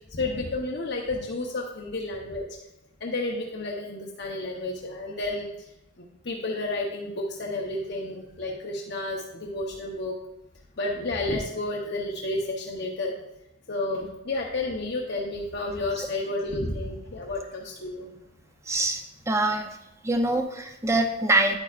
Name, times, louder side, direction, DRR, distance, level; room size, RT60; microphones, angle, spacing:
voice 1, 0.1-2.4 3.0-5.5 6.3-10.1 10.8-13.1 13.7-18.1, left 2 dB, 55° left, -1 dB, 0.9 m, -31 dB
voice 2, 18.7-19.8 20.0-21.6, right 2 dB, 15° right, 5 dB, 0.7 m, -24 dB
9.7 x 8.9 x 2.5 m, 0.89 s
head